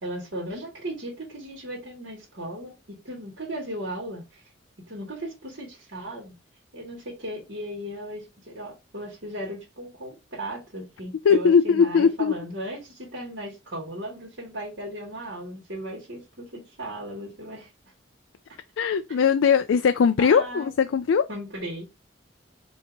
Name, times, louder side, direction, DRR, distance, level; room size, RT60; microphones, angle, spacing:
voice 1, 0.0-4.4 4.9-6.3 6.7-17.7 19.1-19.5 20.2-20.7 21.3-22.0, right 1 dB, 65° right, 2.1 m, -36 dB
voice 2, 11.2-12.3 18.8-21.3, left 6 dB, 90° left, 0.4 m, -20 dB
5.4 x 2.8 x 3.5 m
head